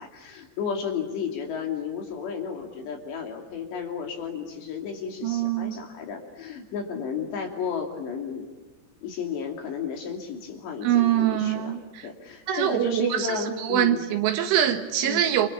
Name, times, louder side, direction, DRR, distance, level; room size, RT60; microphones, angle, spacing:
voice 1, 0.0-8.5 9.0-14.1 15.0-15.2, left 6 dB, 60° left, 3 dB, 4.7 m, -33 dB
voice 2, 5.2-5.7 10.8-11.8 12.5-13.1 13.7-15.5, right 11 dB, 75° right, 6 dB, 3.7 m, -23 dB
29.5 x 27.0 x 7.3 m, 1.1 s
omnidirectional pair, 6.0 m